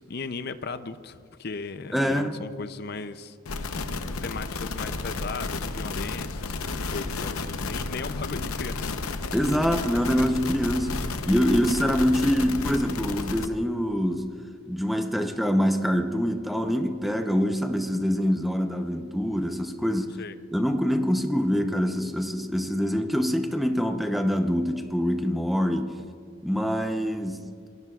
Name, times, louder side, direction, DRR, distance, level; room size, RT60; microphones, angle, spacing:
voice 1, 0.0-3.7 4.2-8.9 20.2-20.3, left 4 dB, 50° left, 11 dB, 0.6 m, -37 dB
voice 2, 1.9-2.4 9.3-11.0 11.3-20.2 20.5-26.0 26.4-27.7, equal, ahead, 5 dB, 0.8 m, -25 dB
sound 1, 3.5-13.5, left 3 dB, 85° left, 0.9 m, -32 dB
28.0 x 21.0 x 2.4 m, 2.2 s
head